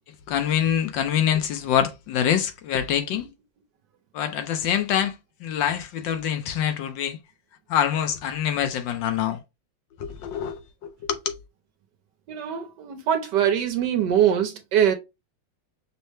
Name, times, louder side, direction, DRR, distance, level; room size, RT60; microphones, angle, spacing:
voice 1, 0.3-3.3 4.1-7.2 7.7-9.4 10.0-11.4, left 9 dB, 75° left, 1.3 m, -25 dB
voice 2, 12.3-14.9, right 9 dB, 70° right, 1.2 m, -23 dB
5.5 x 2.1 x 3.2 m
omnidirectional pair, 2.2 m